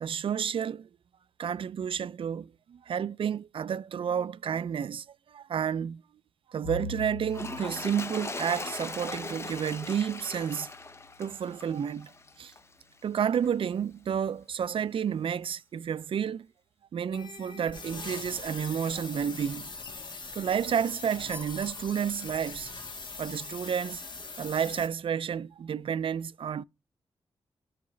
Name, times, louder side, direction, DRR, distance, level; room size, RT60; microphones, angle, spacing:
voice 1, 0.0-0.9 1.4-5.0 5.3-6.0 6.5-10.7 11.2-12.1 12.4-12.5 13.0-16.5 16.9-19.7 20.3-22.7 23.2-24.0 24.4-26.6, right 8 dB, 60° right, 0.3 m, -31 dB
Bowed string instrument, 6.6-11.0, left 3 dB, 85° left, 1.0 m, -44 dB
Toilet flush, 7.2-12.7 13.4-13.5, left 3 dB, 25° left, 0.6 m, -40 dB
sound 1, 17.1-24.9, left 3 dB, 50° left, 1.6 m, -42 dB
14.0 x 4.7 x 3.1 m
wide cardioid pair, 105°, 10 cm